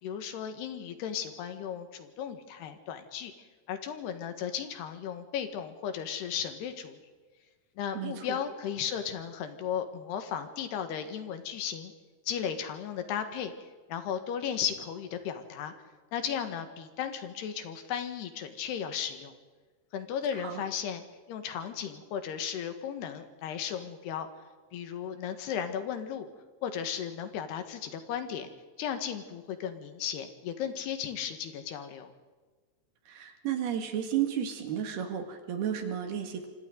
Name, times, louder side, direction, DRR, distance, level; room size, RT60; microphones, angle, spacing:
voice 1, 0.0-3.3 3.7-7.0 7.8-11.9 12.3-13.5 13.9-15.7 16.1-19.3 19.9-24.3 24.7-26.3 26.6-28.5 28.8-32.1, left 8 dB, 80° left, 8 dB, 3.6 m, -35 dB
voice 2, 8.0-8.4 20.4-20.6 33.1-36.5, right 9 dB, 75° right, 5 dB, 3.9 m, -33 dB
26.5 x 25.5 x 3.9 m, 1.4 s
omnidirectional pair, 4.7 m